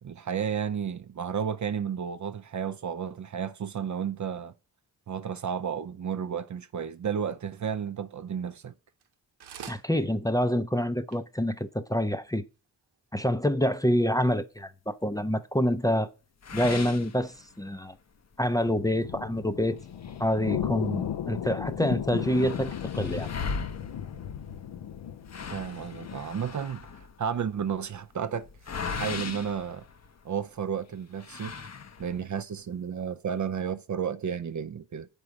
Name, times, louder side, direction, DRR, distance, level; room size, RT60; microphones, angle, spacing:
voice 1, 0.0-4.5 5.1-8.7 25.5-29.8 30.2-31.6 32.0-35.1, right 7 dB, 50° right, 0.6 m, -32 dB
sound 1, 9.0-9.1 9.4-9.9 10.4-10.5 10.8-10.9 11.1-11.2 11.8-11.9, right 8 dB, 90° right, 0.9 m, -43 dB
voice 2, 9.7-12.4 13.1-16.1 16.5-17.9 18.4-19.8 20.2-23.3, equal, 10° left, 0.6 m, -27 dB
sound 2, 16.4-17.9 18.3-18.4 18.9-19.0 19.8-21.1 21.4-21.5 21.7-30.5 31.2-32.3, left 5 dB, 45° left, 0.8 m, -39 dB
sound 3, 18.6-26.2, left 9 dB, 80° left, 0.7 m, -35 dB
7.5 x 5.4 x 4.8 m
cardioid pair, 65°, 39 cm